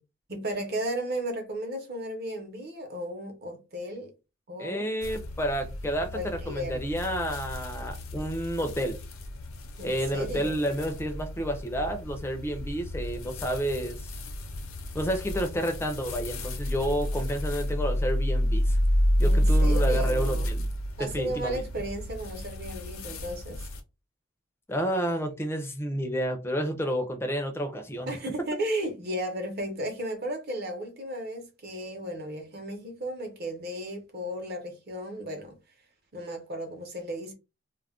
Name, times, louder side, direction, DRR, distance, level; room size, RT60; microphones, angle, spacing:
voice 1, 0.3-4.1 4.5-4.9 6.1-6.8 9.8-10.6 19.2-20.5 21.0-23.7 28.1-35.6 36.1-37.3, right 1 dB, 45° right, 0.7 m, -34 dB
voice 2, 4.6-9.0 9.8-14.1 14.9-18.8 19.2-20.7 21.0-21.6 24.7-28.1, equal, 10° left, 0.4 m, -30 dB
sound 1, 5.0-23.8, equal, 75° left, 0.6 m, -30 dB
2.3 x 2.1 x 3.5 m
head